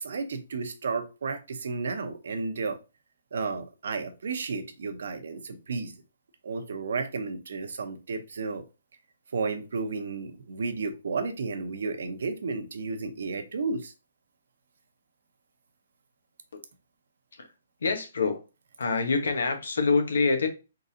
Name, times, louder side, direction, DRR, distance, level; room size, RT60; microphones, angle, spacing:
voice 1, 0.0-2.8 3.3-5.9 6.4-8.6 9.3-13.9, right 4 dB, 75° right, 0.9 m, -32 dB
voice 2, 17.8-18.4 18.8-20.5, left 4 dB, 85° left, 1.2 m, -26 dB
4.6 x 3.9 x 2.7 m
hypercardioid pair, 160°, 0 cm